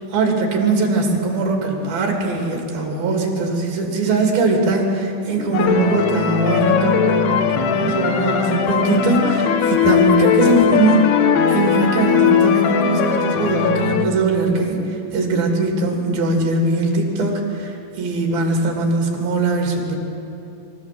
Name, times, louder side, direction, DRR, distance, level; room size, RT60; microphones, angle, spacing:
voice 1, 0.1-11.2 11.5-20.0, right 2 dB, 70° right, 1 dB, 4.5 m, -20 dB
sound 1, 5.5-14.1, left 7 dB, 85° left, 3.1 m, -18 dB
24.5 x 14.5 x 7.7 m, 2.7 s
omnidirectional pair, 4.4 m